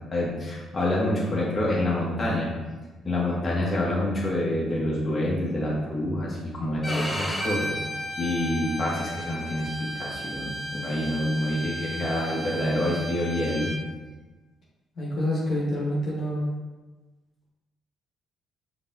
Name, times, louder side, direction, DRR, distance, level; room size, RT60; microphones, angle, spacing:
voice 1, 0.1-2.5 3.0-7.7 8.2-13.7, left 1 dB, 35° left, -4 dB, 1.2 m, -27 dB
Bowed string instrument, 6.8-13.8, equal, 15° left, 1.0 m, -34 dB
voice 2, 15.0-16.4, left 1 dB, 65° left, -5 dB, 1.2 m, -27 dB
5.1 x 2.9 x 2.6 m, 1.2 s
hypercardioid pair, 50°, 0 cm